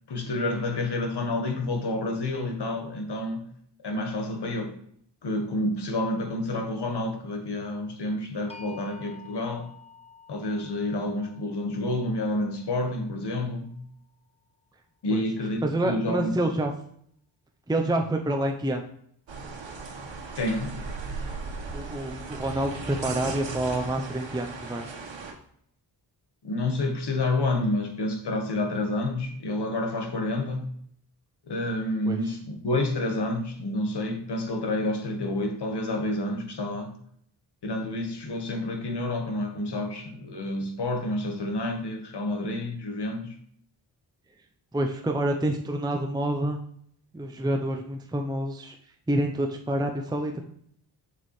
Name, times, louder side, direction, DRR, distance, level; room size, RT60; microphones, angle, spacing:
voice 1, 0.1-3.5 3.8-4.7 5.2-9.7 10.3-13.8 15.0-16.3 20.4-20.7 26.4-30.7 31.5-37.0 37.6-43.4, left 2 dB, 65° left, 1.6 m, -29 dB
sound 1, 8.5-14.5, left 4 dB, 15° left, 0.9 m, -51 dB
voice 2, 15.6-16.7 17.7-18.8 21.7-24.8 32.1-32.2 44.7-46.6 47.1-48.8 49.1-50.4, right 1 dB, 10° right, 0.7 m, -27 dB
sound 2, 19.3-25.3, right 4 dB, 85° right, 1.5 m, -37 dB
6.9 x 6.5 x 3.2 m
wide cardioid pair, 100°, 44 cm